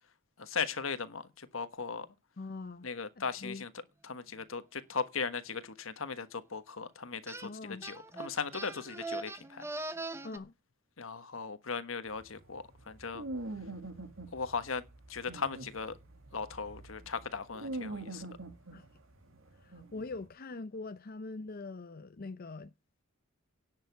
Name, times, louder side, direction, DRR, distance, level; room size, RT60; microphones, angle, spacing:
voice 1, 0.4-2.1 2.8-3.7 4.0-9.6 11.0-13.2 14.3-14.8 15.1-16.0 16.3-18.2, left 5 dB, 75° left, 1.3 m, -38 dB
voice 2, 2.4-2.9 3.4-3.6 7.4-7.9 10.2-10.5 18.7-18.9 19.5-22.7, left 3 dB, 45° left, 0.6 m, -43 dB
sound 1, 7.3-7.5 7.8-10.4, right 2 dB, 15° right, 0.8 m, -41 dB
sound 2, 12.1-20.3, right 2 dB, 75° right, 2.3 m, -44 dB
10.5 x 6.8 x 8.1 m
head